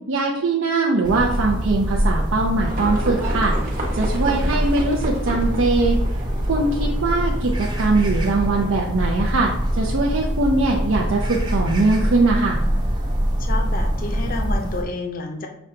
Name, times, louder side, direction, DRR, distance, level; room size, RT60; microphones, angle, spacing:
voice 1, 0.1-3.5 3.9-6.0 6.5-12.6, right 3 dB, 90° right, -2 dB, 0.6 m, -21 dB
sound 1, 1.0-14.8, equal, 25° right, 0.6 m, -24 dB
Livestock farm animals working animals, 2.7-8.7, right 1 dB, 45° right, 1.1 m, -33 dB
voice 2, 4.3-4.6 13.4-15.5, left 3 dB, 45° left, 4 dB, 0.5 m, -30 dB
5.9 x 2.2 x 3.7 m, 0.82 s
head